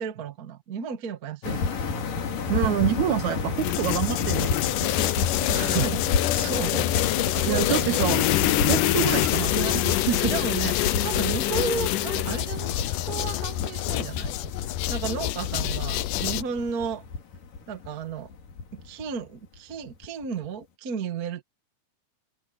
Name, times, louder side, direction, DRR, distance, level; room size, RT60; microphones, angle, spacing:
voice 1, 0.0-1.8 5.5-8.0 8.6-8.8 10.2-14.3 14.9-17.0 17.7-18.3 18.7-21.4, right 6 dB, 90° right, 0.8 m, -34 dB
sound 1, 1.4-20.5, left 4 dB, 60° left, 4.3 m, -32 dB
voice 2, 2.5-4.9 5.5-5.8 7.4-8.3 8.7-10.3, right 11 dB, 70° right, 1.8 m, -27 dB
sound 2, 3.6-16.4, left 15 dB, 75° left, 2.0 m, -26 dB
omnidirectional pair, 4.4 m